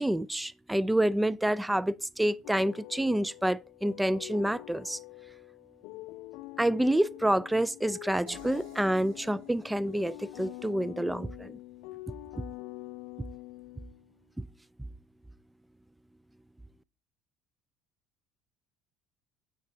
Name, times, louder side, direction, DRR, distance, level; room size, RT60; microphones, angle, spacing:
voice 1, 0.0-5.0 6.6-11.6 14.4-14.5, right 1 dB, 5° right, 0.4 m, -28 dB
sound 1, 2.4-14.2, left 21 dB, 70° left, 0.4 m, -45 dB
sound 2, 8.3-11.3, right 1 dB, 85° right, 3.6 m, -54 dB
9.2 x 4.1 x 4.6 m
hypercardioid pair, 70°, 0 cm